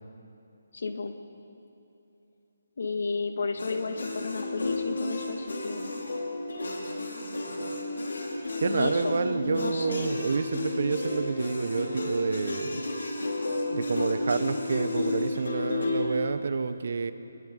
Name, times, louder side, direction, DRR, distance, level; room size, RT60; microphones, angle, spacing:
voice 1, 0.7-1.1 2.8-5.9 8.6-10.1, left 4 dB, 55° left, 6 dB, 2.0 m, -32 dB
sound 1, 3.6-16.1, left 2 dB, 85° left, 5.4 m, -32 dB
voice 2, 8.6-12.8 13.7-17.1, right 4 dB, 50° right, 11 dB, 1.1 m, -29 dB
28.5 x 21.5 x 5.4 m, 2.7 s
hypercardioid pair, 175°, 0 cm